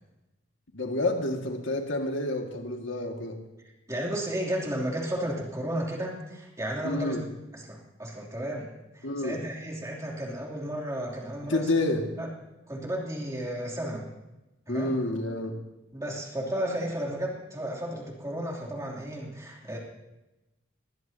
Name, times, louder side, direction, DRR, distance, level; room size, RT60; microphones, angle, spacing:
voice 1, 0.7-3.4 6.8-7.2 9.0-9.4 11.4-12.1 14.7-15.6, left 2 dB, 75° left, 3 dB, 2.0 m, -29 dB
voice 2, 3.9-7.2 7.5-11.6 12.2-12.3 12.7-14.1 14.7-14.9 15.9-19.8, right 1 dB, 15° right, -2 dB, 3.0 m, -33 dB
21.0 x 18.5 x 2.8 m, 1.0 s
head